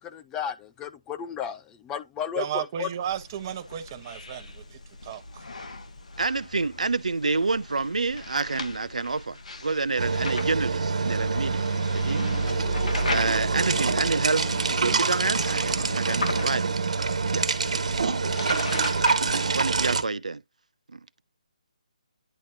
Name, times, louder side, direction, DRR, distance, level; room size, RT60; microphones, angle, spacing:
voice 1, 0.0-2.9, left 9 dB, 15° left, 0.5 m, -34 dB
voice 2, 2.4-5.4, right 10 dB, 30° right, 1.0 m, -34 dB
sound 1, 3.0-20.0, left 3 dB, 75° left, 1.6 m, -39 dB
voice 3, 6.2-12.3 13.1-16.7 17.3-17.5 19.5-20.4 20.9-21.0, right 3 dB, 85° right, 0.6 m, -28 dB
sound 2, 10.0-20.0, right 4 dB, 70° right, 1.3 m, -26 dB
sound 3, 10.9-16.0, left 7 dB, 40° left, 1.4 m, -41 dB
10.0 x 4.1 x 2.7 m
figure-of-eight pair, 155°, 4 cm